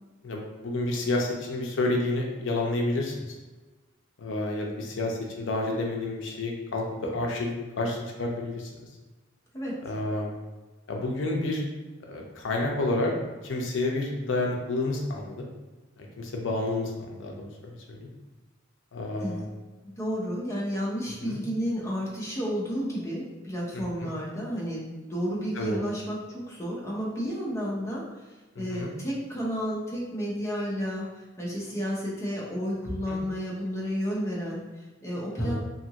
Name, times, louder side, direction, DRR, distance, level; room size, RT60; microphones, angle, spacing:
voice 1, 0.2-3.3 4.2-8.9 9.8-10.3 10.9-11.6 12.1-13.1 13.4-15.5 16.0-17.4 17.6-18.1 18.9-19.5 21.2-21.4 23.7-24.1 25.6-25.8 28.6-28.9 33.1-33.2 35.4-35.6, left 2 dB, 65° left, 0 dB, 0.5 m, -30 dB
voice 2, 19.8-28.0 28.6-35.6, equal, 15° left, -5 dB, 0.7 m, -31 dB
2.8 x 2.5 x 2.8 m, 1.2 s
head